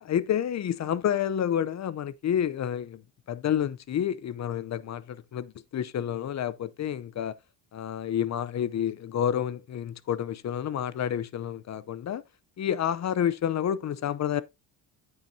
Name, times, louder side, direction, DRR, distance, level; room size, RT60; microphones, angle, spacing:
voice 1, 0.0-3.0 3.3-7.3 7.7-12.2 12.6-14.4, left 9 dB, 40° left, 0.6 m, -29 dB
8.6 x 7.8 x 2.7 m
cardioid pair, 90°, 41 cm